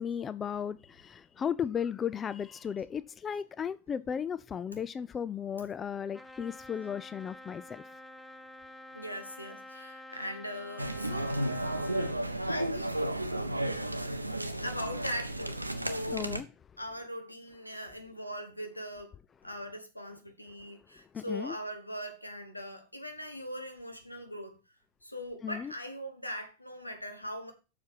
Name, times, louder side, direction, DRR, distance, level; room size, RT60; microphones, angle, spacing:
voice 1, 0.0-7.8 16.1-16.5 21.1-21.6 25.4-25.7, left 8 dB, 20° left, 0.3 m, -35 dB
Trumpet, 6.1-12.2, left 1 dB, 5° left, 0.7 m, -49 dB
voice 2, 8.9-11.4 12.5-13.1 14.3-16.4 16.8-19.2 19.4-24.6 25.0-27.5, equal, 85° left, 1.3 m, -40 dB
sound 1, 10.8-16.4, right 1 dB, 85° right, 0.7 m, -33 dB
7.3 x 5.8 x 4.8 m
figure-of-eight pair, 90°, 0 cm